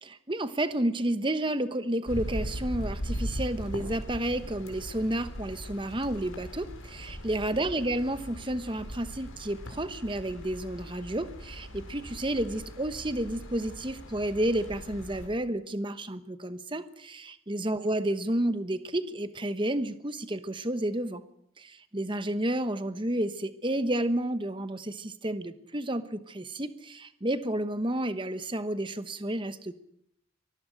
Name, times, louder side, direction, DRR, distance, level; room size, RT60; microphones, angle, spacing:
voice 1, 0.0-21.2 21.6-29.7, right 1 dB, 25° right, 11 dB, 1.0 m, -31 dB
sound 1, 2.1-15.3, equal, 85° left, 5.0 m, -39 dB
24.5 x 20.5 x 6.5 m, 0.73 s
head